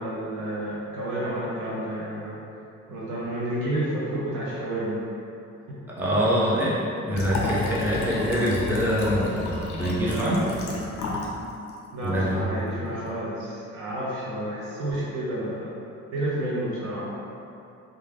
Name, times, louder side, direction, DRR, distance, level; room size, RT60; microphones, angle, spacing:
voice 1, 0.0-2.4 2.9-5.0 5.7-5.8 10.0-10.5 11.9-15.8 16.1-17.1, right 1 dB, 90° right, -7 dB, 0.7 m, -30 dB
voice 2, 6.0-10.4 12.0-12.4, equal, 5° right, -7 dB, 0.5 m, -25 dB
Liquid, 7.1-11.4 11.7-11.8, left 3 dB, 75° left, 0.5 m, -31 dB
2.4 x 2.2 x 3.3 m, 2.6 s
cardioid pair, 90°, 30 cm